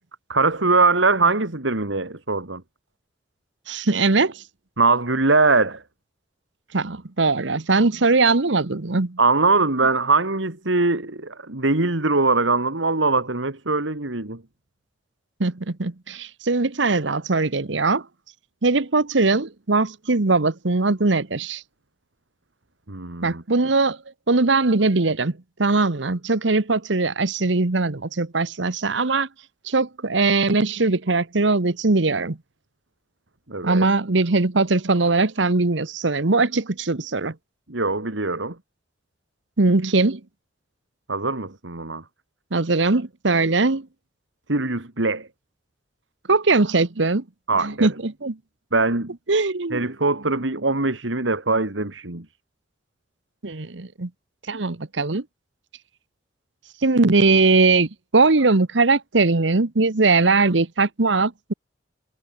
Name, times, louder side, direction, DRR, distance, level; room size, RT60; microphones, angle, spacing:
voice 1, 0.3-2.6 4.8-5.8 9.2-14.4 22.9-23.4 33.5-33.9 37.7-38.6 41.1-42.0 44.5-45.3 47.5-47.9 48.7-49.1 49.7-52.3, right 3 dB, 90° right, 2.5 m, -22 dB
voice 2, 3.7-4.4 6.7-9.2 15.4-18.0 18.6-21.6 23.2-24.0 24.3-25.3 25.6-29.3 29.6-32.4 33.6-37.3 39.6-40.2 42.5-43.9 46.3-47.2 47.8-48.3 49.3-49.9 53.4-54.1 54.5-55.2 56.8-61.5, right 3 dB, 75° right, 1.2 m, -20 dB
head